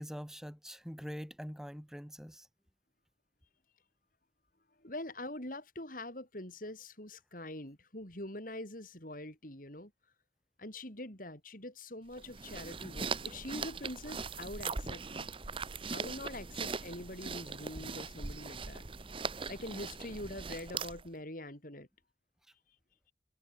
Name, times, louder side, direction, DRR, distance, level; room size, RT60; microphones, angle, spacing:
voice 1, 0.0-2.5, equal, 5° right, 2.2 m, -44 dB
voice 2, 4.8-9.9 10.6-15.3 15.9-18.9 19.5-21.9, left 1 dB, 50° left, 7.0 m, -44 dB
sound 1, 12.1-21.1, right 4 dB, 30° right, 0.9 m, -40 dB
head